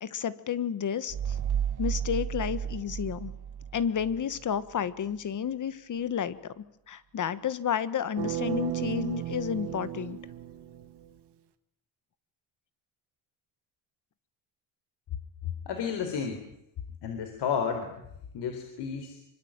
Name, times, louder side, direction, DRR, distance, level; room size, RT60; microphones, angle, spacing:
voice 1, 0.0-1.4 1.8-3.3 3.7-10.2, left 8 dB, 40° left, 14 dB, 1.6 m, -31 dB
sound 1, 1.1-4.5, right 8 dB, 40° right, 1.3 m, -33 dB
sound 2, 8.2-11.1, right 11 dB, 60° right, 2.1 m, -34 dB
voice 2, 15.4-16.4 17.0-18.0 18.3-19.2, left 7 dB, 65° left, 6 dB, 4.2 m, -32 dB
26.5 x 24.5 x 9.0 m, 0.78 s
cardioid pair, 160°, 45 cm